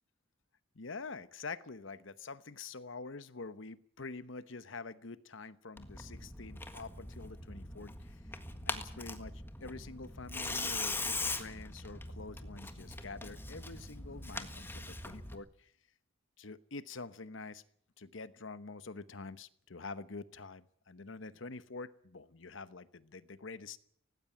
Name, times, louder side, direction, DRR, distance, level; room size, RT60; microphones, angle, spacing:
voice 1, 0.7-15.7 16.4-17.6 18.0-23.8, left 3 dB, 65° left, 15 dB, 1.0 m, -46 dB
Tearing, 5.8-15.4, left 2 dB, 10° left, 1.6 m, -41 dB
18.5 x 16.5 x 8.7 m, 0.65 s
head